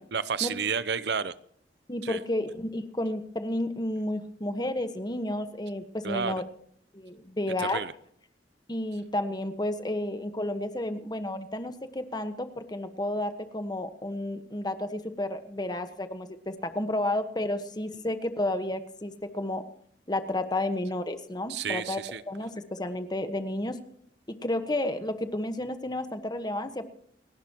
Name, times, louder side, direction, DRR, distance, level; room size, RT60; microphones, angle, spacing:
voice 1, 0.1-1.3 2.0-2.2 6.0-6.3 7.6-7.9 21.5-22.2, right 6 dB, 65° right, 16 dB, 0.6 m, -30 dB
voice 2, 1.9-6.4 6.9-7.8 8.7-19.6 20.1-22.0 22.3-23.7 24.3-26.9, left 1 dB, 25° left, 9 dB, 1.3 m, -31 dB
30.0 x 11.5 x 3.0 m, 0.63 s
head